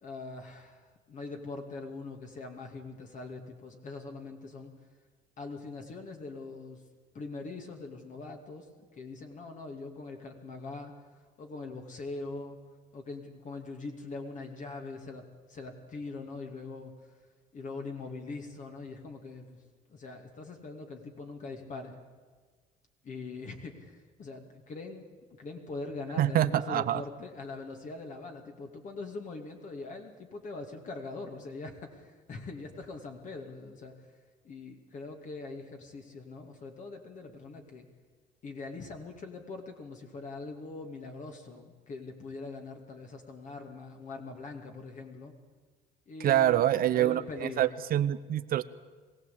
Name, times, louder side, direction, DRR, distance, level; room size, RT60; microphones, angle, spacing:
voice 1, 0.0-4.7 5.4-6.8 7.1-8.7 9.0-11.0 11.4-12.6 12.9-16.9 17.5-19.6 19.9-22.0 23.0-25.1 25.4-34.1 34.4-37.9 38.4-45.4 46.1-46.6 46.9-47.8, left 3 dB, 45° left, 3 dB, 2.5 m, -42 dB
voice 2, 26.2-27.0 46.2-48.6, right 12 dB, 60° right, 12 dB, 0.7 m, -26 dB
22.0 x 16.5 x 8.5 m, 1.4 s
cardioid pair, 110°, 17 cm